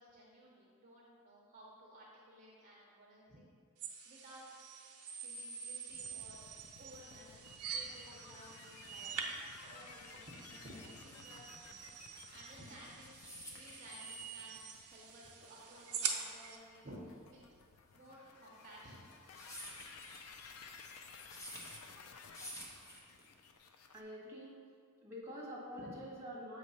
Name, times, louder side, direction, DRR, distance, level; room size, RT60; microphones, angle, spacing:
voice 1, 0.0-3.5 4.0-4.4 5.2-6.4 6.8-11.4 12.3-14.6 14.9-17.4 17.9-19.1, equal, 35° right, -4 dB, 0.8 m, -56 dB
sound 1, 3.8-16.6, right 6 dB, 85° right, 0.7 m, -45 dB
sound 2, 5.9-24.0, left 5 dB, 70° left, 0.5 m, -57 dB
sound 3, 12.8-23.6, equal, 15° left, 0.8 m, -52 dB
voice 2, 23.9-24.5 25.0-26.6, equal, 10° right, -5 dB, 1.4 m, -46 dB
7.2 x 3.1 x 5.5 m, 2.1 s
head